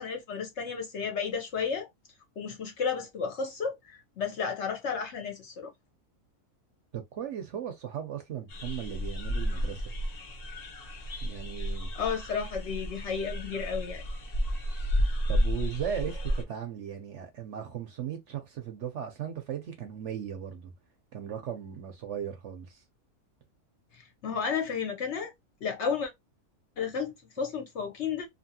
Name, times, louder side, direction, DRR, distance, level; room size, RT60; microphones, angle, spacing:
voice 1, 0.0-1.9 2.4-5.7 12.0-14.0 23.9-25.3 25.6-26.1 26.8-28.3, left 6 dB, 60° left, 0.8 m, -32 dB
voice 2, 6.9-9.8 11.2-11.9 15.3-20.7 21.1-22.8, right 9 dB, 60° right, 0.8 m, -37 dB
sound 1, 8.5-16.4, equal, 80° left, 0.3 m, -32 dB
2.7 x 2.6 x 2.6 m
omnidirectional pair, 1.6 m